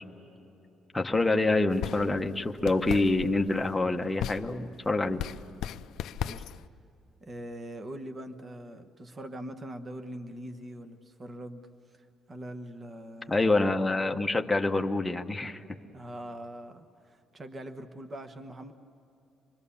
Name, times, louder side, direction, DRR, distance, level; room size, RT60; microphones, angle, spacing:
voice 1, 0.9-5.2 13.3-15.6, left 2 dB, 10° left, 4 dB, 0.9 m, -26 dB
sound 1, 1.7-6.7, left 10 dB, 70° left, 0.5 m, -38 dB
voice 2, 7.2-11.7 12.0-13.5 15.9-18.7, right 1 dB, 25° right, 7 dB, 1.1 m, -42 dB
26.5 x 22.0 x 7.1 m, 2.8 s
cardioid pair, 170°, 0 cm